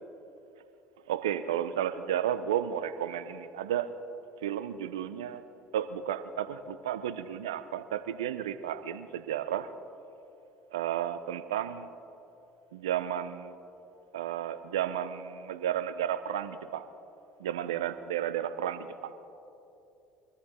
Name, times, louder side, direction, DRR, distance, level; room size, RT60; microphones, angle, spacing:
voice 1, 1.1-3.9 4.4-5.4 5.7-9.7 10.7-11.9 12.7-13.6 14.1-16.9 17.4-19.1, right 10 dB, 85° right, 12 dB, 0.7 m, -32 dB
23.5 x 14.5 x 3.7 m, 2.9 s
hypercardioid pair, 65°, 3 cm